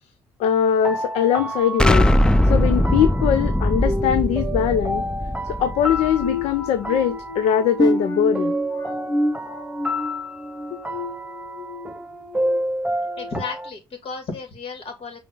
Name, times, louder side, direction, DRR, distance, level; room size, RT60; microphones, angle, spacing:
voice 1, 0.4-2.1 2.5-5.1 5.5-8.5, left 9 dB, 85° left, 0.6 m, -21 dB
sound 1, 0.6-13.7, equal, 10° right, 1.0 m, -30 dB
Explosion, 1.8-6.6, left 1 dB, 10° left, 0.5 m, -20 dB
sound 2, 6.2-11.9 12.3-12.6 13.1-13.3, equal, 40° left, 1.7 m, -28 dB
voice 2, 13.2-15.2, left 4 dB, 60° left, 2.9 m, -33 dB
6.1 x 3.4 x 5.3 m
supercardioid pair, 60°, 10 cm